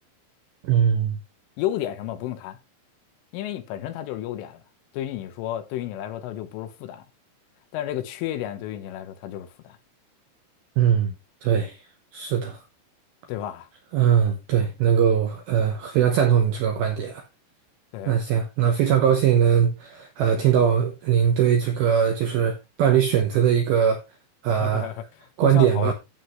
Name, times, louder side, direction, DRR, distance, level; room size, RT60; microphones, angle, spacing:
voice 1, 0.6-1.2 10.8-11.1 11.4-11.8 12.1-12.6 13.9-17.2 18.1-24.0 24.4-24.9 25.4-25.9, right 8 dB, 75° right, 2.2 m, -21 dB
voice 2, 1.6-2.6 3.3-4.6 4.9-7.0 7.7-9.8 13.3-13.7 17.9-18.2 24.5-25.0 25.4-25.9, left 12 dB, 80° left, 3.5 m, -31 dB
12.5 x 7.6 x 3.1 m
omnidirectional pair, 5.8 m